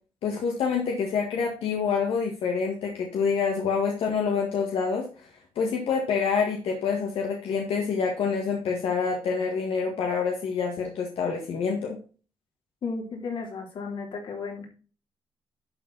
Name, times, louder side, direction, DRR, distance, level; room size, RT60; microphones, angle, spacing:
voice 1, 0.2-5.3 5.6-12.0, left 5 dB, 85° left, 0 dB, 1.8 m, -27 dB
voice 2, 12.8-14.7, left 4 dB, 60° left, 0 dB, 3.6 m, -34 dB
11.5 x 4.7 x 4.1 m, 0.37 s
cardioid pair, 130°, 9 cm